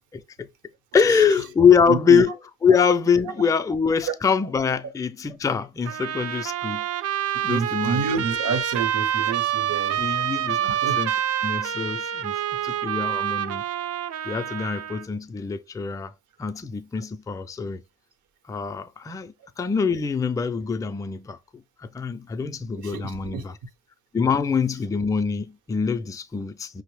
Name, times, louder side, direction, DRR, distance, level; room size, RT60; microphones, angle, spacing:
voice 1, 0.1-0.5 0.9-2.4 2.6-6.9 7.4-8.2 10.0-11.2 11.4-12.4 12.6-13.6 14.2-16.1 16.4-17.8 18.5-23.6 24.1-26.8, left 6 dB, 10° left, 0.3 m, -24 dB
voice 2, 1.9-2.2 3.3-3.4 4.0-4.1 4.4-4.5 7.5-10.0 10.8-11.0 22.8-23.4, right 5 dB, 75° right, 0.9 m, -28 dB
Trumpet, 5.8-15.0, right 10 dB, 55° right, 0.5 m, -27 dB
5.2 x 2.0 x 3.1 m
cardioid pair, 90°, 30 cm